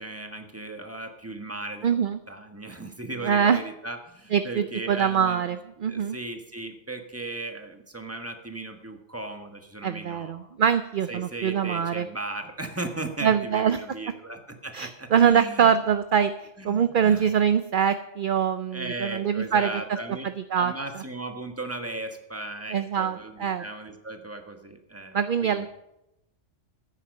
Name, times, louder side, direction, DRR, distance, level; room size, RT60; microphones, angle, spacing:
voice 1, 0.0-5.6 5.8-10.5 11.1-15.7 16.6-17.3 18.7-20.3 20.5-25.6, right 2 dB, 10° right, 5 dB, 1.4 m, -37 dB
voice 2, 1.8-2.2 3.2-3.6 4.3-6.2 9.8-12.1 13.2-13.8 14.7-19.7 20.5-21.0 22.7-23.6 25.1-25.7, right 8 dB, 55° right, 10 dB, 0.7 m, -24 dB
14.0 x 9.8 x 5.3 m, 0.88 s
omnidirectional pair, 1.3 m